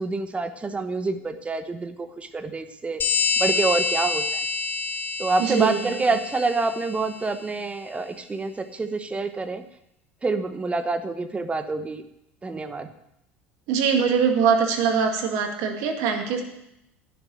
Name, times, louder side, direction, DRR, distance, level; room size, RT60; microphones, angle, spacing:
voice 1, 0.0-3.0 3.4-4.4 5.2-9.6 10.2-12.0 12.4-12.9, right 3 dB, 20° right, 10 dB, 1.0 m, -27 dB
sound 1, 3.0-7.3, left 4 dB, 30° left, 1.8 m, -27 dB
voice 2, 5.5-5.8 13.7-16.4, right 6 dB, 60° right, 4 dB, 2.1 m, -22 dB
10.5 x 6.9 x 9.1 m, 0.82 s
hypercardioid pair, 70°, 6 cm